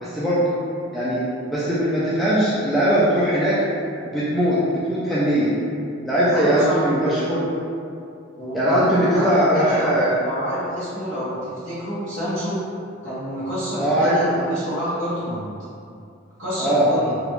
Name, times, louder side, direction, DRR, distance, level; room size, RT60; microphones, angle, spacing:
voice 1, 0.0-0.4 0.9-3.6 4.1-5.6 6.1-7.5 8.5-10.2 13.8-14.1 16.6-16.9, equal, ahead, -11 dB, 0.4 m, -20 dB
voice 2, 6.3-6.8 8.4-12.6 13.0-15.5 16.4-17.2, equal, 70° right, -12 dB, 1.0 m, -28 dB
3.2 x 2.4 x 3.0 m, 2.5 s
head